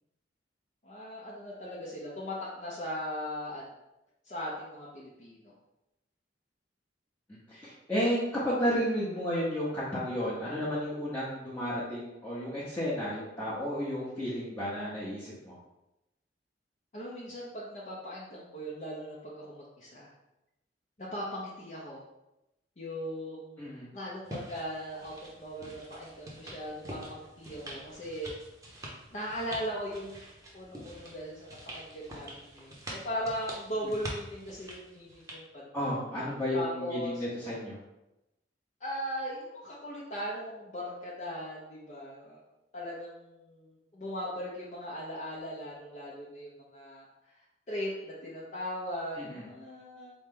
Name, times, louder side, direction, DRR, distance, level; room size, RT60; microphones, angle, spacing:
voice 1, 0.8-3.6 4.2-5.5 16.9-20.1 21.0-22.0 22.8-28.3 29.1-30.2 30.5-35.9 36.5-37.2 38.8-42.4 42.7-47.4 47.7-50.1, equal, 40° left, -6 dB, 0.7 m, -39 dB
voice 2, 7.3-15.6 23.6-23.9 35.7-37.8 49.2-49.5, equal, 10° left, -10 dB, 0.9 m, -32 dB
sound 1, 24.3-35.4, right 1 dB, 20° right, 0.8 m, -45 dB
4.2 x 3.1 x 3.7 m, 0.93 s
head